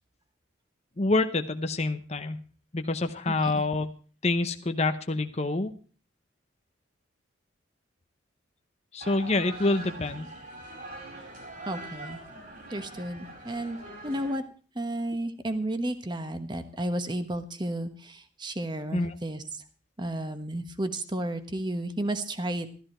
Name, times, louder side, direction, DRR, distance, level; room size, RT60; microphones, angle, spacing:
voice 1, 1.0-2.4 2.7-3.9 4.2-5.7 8.9-10.3 18.9-19.1, left 2 dB, 35° left, 7 dB, 0.8 m, -27 dB
voice 2, 3.3-3.6 11.7-12.2 12.7-13.8 14.0-14.4 14.7-19.4 20.0-22.7, right 1 dB, 25° right, 9 dB, 1.2 m, -32 dB
sound 1, 9.0-14.4, right 2 dB, 45° right, 4.8 m, -43 dB
13.5 x 13.5 x 4.4 m, 0.40 s
head